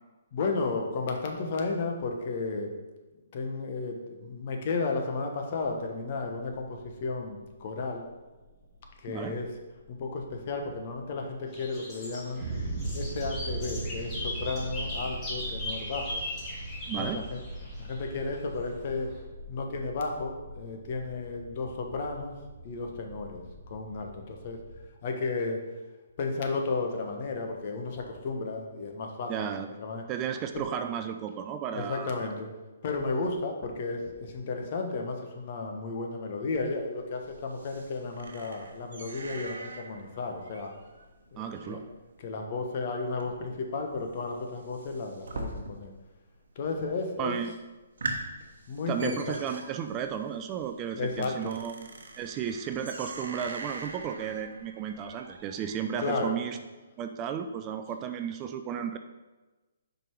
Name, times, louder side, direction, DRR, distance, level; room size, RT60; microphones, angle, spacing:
voice 1, 0.3-2.7 3.3-8.0 9.0-9.5 9.9-12.4 12.9-16.1 16.9-17.4 17.8-19.1 19.5-22.4 22.6-23.4 23.7-24.6 25.0-25.6 26.2-29.3 29.8-30.0 30.5-30.6 31.7-32.5 32.8-40.7 41.3-41.8 42.2-45.9 46.5-47.4 48.7-49.4 50.9-51.5 56.0-56.4, left 3 dB, 45° left, 3 dB, 1.1 m, -33 dB
sound 1, 5.6-24.9, right 2 dB, 55° right, 1.0 m, -41 dB
sound 2, 11.5-18.4, left 1 dB, 20° left, 2.0 m, -38 dB
voice 2, 16.9-17.2 29.3-29.7 30.1-32.2 41.4-41.8 47.2-47.6 48.8-51.9 52.2-56.6 57.0-59.0, right 8 dB, 25° right, 7 dB, 0.3 m, -34 dB
sound 3, 36.5-46.1 46.3-46.9 47.3-47.4 47.8-56.1, right 2 dB, 75° right, 0.9 m, -43 dB
5.2 x 4.5 x 4.6 m, 1.2 s
hypercardioid pair, 150°, 0 cm